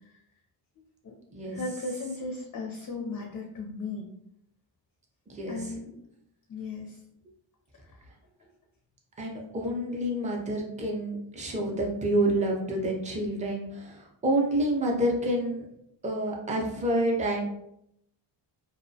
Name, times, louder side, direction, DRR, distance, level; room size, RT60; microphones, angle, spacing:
voice 1, 1.5-4.1 5.5-5.9 6.5-7.0, left 3 dB, 40° left, 1 dB, 0.4 m, -36 dB
voice 2, 5.3-5.7 9.2-15.7 16.0-17.4, right 1 dB, 15° right, -1 dB, 0.5 m, -28 dB
2.2 x 2.1 x 2.6 m, 0.75 s
cardioid pair, 85°, 49 cm